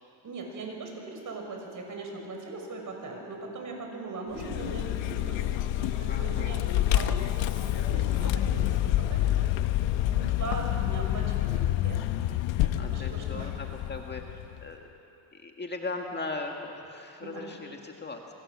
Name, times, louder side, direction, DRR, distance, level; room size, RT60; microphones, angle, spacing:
voice 1, 0.2-5.4 5.7-9.3 10.1-12.0 12.6-13.5 17.2-17.4, right 3 dB, 40° right, 2 dB, 6.4 m, -39 dB
Vehicle, 4.3-14.7, left 13 dB, 65° left, 1.1 m, -28 dB
voice 2, 6.1-6.6 12.8-14.8 15.3-18.3, left 3 dB, 20° left, 2 dB, 1.9 m, -38 dB
29.0 x 23.5 x 7.6 m, 2.9 s
cardioid pair, 115°, 48 cm